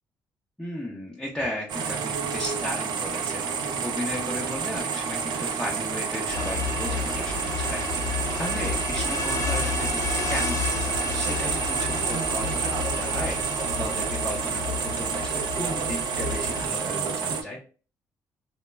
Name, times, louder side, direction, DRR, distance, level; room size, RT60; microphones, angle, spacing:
voice 1, 0.6-10.0 10.3-13.4 13.8-17.6, left 1 dB, 5° left, -5 dB, 0.6 m, -35 dB
sound 1, 1.7-17.4, right 6 dB, 75° right, 0.4 m, -29 dB
sound 2, 6.3-16.7, left 5 dB, 45° left, 0.5 m, -31 dB
2.2 x 2.0 x 3.2 m, 0.37 s
cardioid pair, 80°, 8 cm